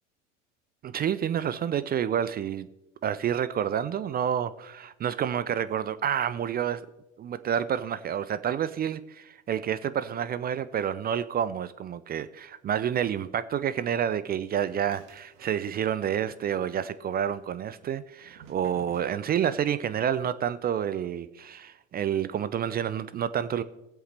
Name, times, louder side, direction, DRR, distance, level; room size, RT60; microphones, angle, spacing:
voice 1, 0.8-2.7 3.0-6.8 7.2-23.6, right 9 dB, 25° right, 15 dB, 0.4 m, -29 dB
sound 1, 14.6-16.1 16.3-17.1 17.7-20.2, right 6 dB, 65° right, 2.0 m, -52 dB
18.5 x 7.9 x 3.3 m, 0.97 s
hypercardioid pair, 75°, 39 cm